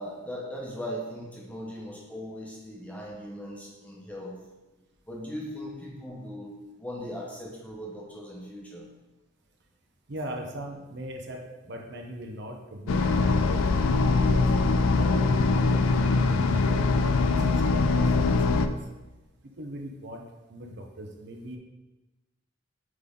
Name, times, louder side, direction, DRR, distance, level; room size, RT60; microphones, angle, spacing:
voice 1, 0.0-4.4 5.1-6.5 6.8-8.9, equal, 5° left, -3 dB, 1.0 m, -39 dB
voice 2, 10.1-18.9 19.4-20.2 20.5-21.6, right 1 dB, 55° right, 2 dB, 0.7 m, -40 dB
sound 1, 12.9-18.7, left 3 dB, 85° left, 0.4 m, -22 dB
7.9 x 3.8 x 3.7 m, 1.1 s
head